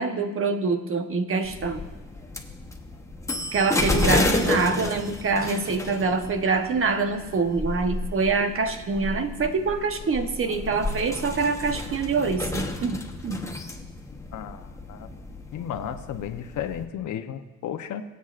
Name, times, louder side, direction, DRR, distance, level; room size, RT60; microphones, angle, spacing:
voice 1, 0.0-1.8 3.5-13.4, right 4 dB, 45° right, 7 dB, 1.1 m, -25 dB
sound 1, 1.4-16.8, left 2 dB, 10° left, 1.1 m, -31 dB
voice 2, 14.3-15.1 15.5-18.0, left 9 dB, 75° left, 8 dB, 0.9 m, -33 dB
23.5 x 8.2 x 2.5 m, 1.1 s
cardioid pair, 90°, 30 cm